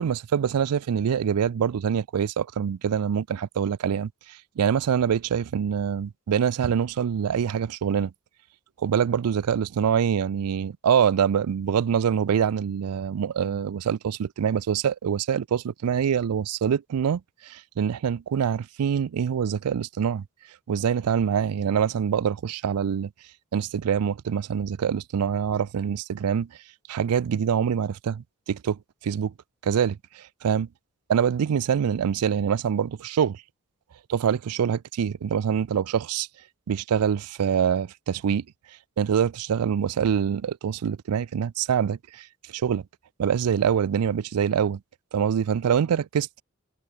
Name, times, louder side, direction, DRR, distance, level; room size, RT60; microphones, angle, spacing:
voice 1, 0.0-8.1 8.8-20.2 20.7-23.1 23.5-26.5 26.9-29.3 29.6-30.7 31.1-33.4 34.1-36.3 36.7-38.4 39.0-42.3 42.5-42.8 43.2-44.8 45.1-46.3, right 8 dB, 85° right, 0.4 m, -25 dB
head